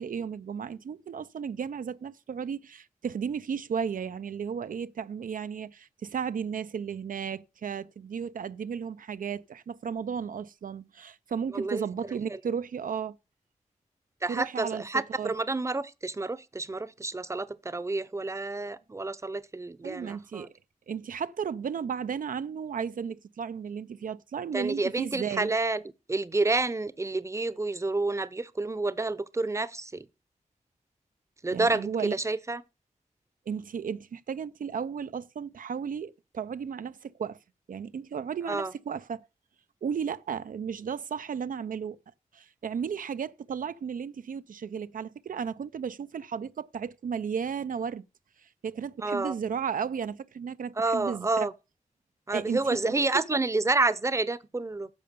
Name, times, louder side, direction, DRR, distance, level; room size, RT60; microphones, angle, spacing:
voice 1, 0.0-13.1 14.3-15.3 19.8-20.5 20.9-25.5 31.5-32.1 33.5-37.4 37.7-39.3 39.8-42.0 42.3-48.0 48.4-51.5 52.3-53.4, right 7 dB, 80° right, 0.5 m, -34 dB
voice 2, 11.5-11.8 12.3-12.4 14.2-20.5 24.5-25.8 26.1-30.1 31.4-32.6 38.5-38.7 49.0-49.4 50.8-51.5 52.3-54.9, right 3 dB, 20° right, 0.7 m, -29 dB
10.5 x 6.7 x 6.7 m
wide cardioid pair, 105°, 14 cm